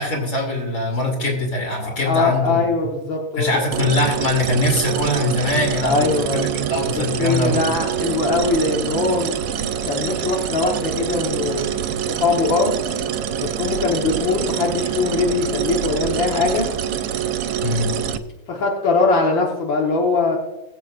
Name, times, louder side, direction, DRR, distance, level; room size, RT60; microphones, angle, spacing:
voice 1, 0.0-2.6 3.4-6.0 6.3-7.6 17.6-17.9, left 1 dB, 40° left, 1 dB, 2.9 m, -22 dB
voice 2, 1.8-3.6 5.8-6.5 6.9-9.3 9.8-11.7 12.1-12.7 13.4-16.7 18.5-20.4, left 3 dB, 70° left, -1 dB, 1.9 m, -21 dB
sound 1, 3.7-18.2, right 9 dB, 70° right, 1.2 m, -25 dB
21.0 x 7.8 x 2.5 m, 1.0 s
omnidirectional pair, 2.2 m